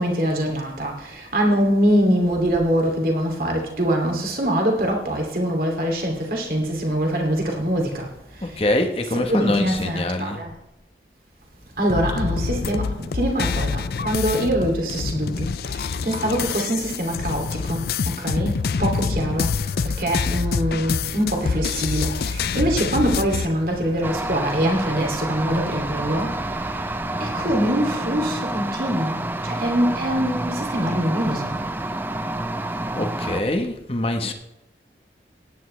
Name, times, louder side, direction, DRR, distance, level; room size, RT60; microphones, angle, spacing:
voice 1, 0.0-8.1 9.3-10.5 11.8-15.5 16.0-17.8 18.2-19.5 20.0-26.3 27.2-31.6, equal, 55° right, 2.6 m, -23 dB
voice 2, 8.4-10.4 32.9-34.3, left 1 dB, 30° left, 1.1 m, -24 dB
sound 1, 11.9-23.5, left 5 dB, 60° left, 0.4 m, -26 dB
sound 2, 19.4-27.7, equal, 70° right, 3.0 m, -39 dB
sound 3, 24.0-33.4, right 1 dB, 10° right, 0.4 m, -28 dB
17.5 x 10.0 x 3.2 m
head